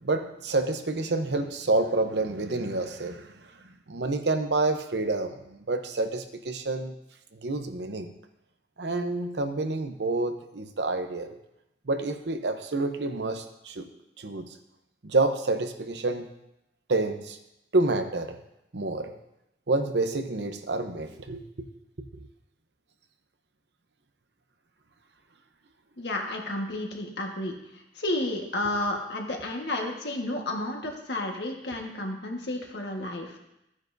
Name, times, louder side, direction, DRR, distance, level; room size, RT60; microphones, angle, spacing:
voice 1, 0.0-3.5 3.9-6.9 7.3-8.1 8.8-11.4 11.9-13.9 14.2-14.5 15.0-16.3 16.9-17.4 17.7-18.4 18.7-19.1 19.7-21.7 22.0-22.3 28.6-28.7, right 2 dB, 70° right, 7 dB, 0.9 m, -28 dB
voice 2, 26.0-27.5 28.0-33.4, left 1 dB, 70° left, 1 dB, 1.6 m, -31 dB
14.5 x 9.6 x 2.7 m, 0.87 s
head